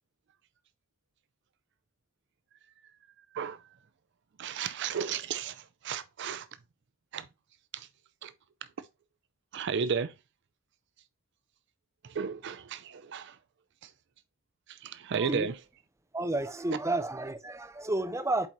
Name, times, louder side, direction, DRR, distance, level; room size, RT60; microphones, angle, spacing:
voice 1, 4.4-6.5 7.1-7.2 7.7-7.9 8.2-8.3 9.5-10.1 12.1-13.3 14.8-15.5, right 6 dB, 55° right, 0.5 m, -33 dB
voice 2, 15.1-15.5 16.1-18.5, right 2 dB, 15° right, 0.6 m, -31 dB
8.4 x 3.9 x 3.0 m
head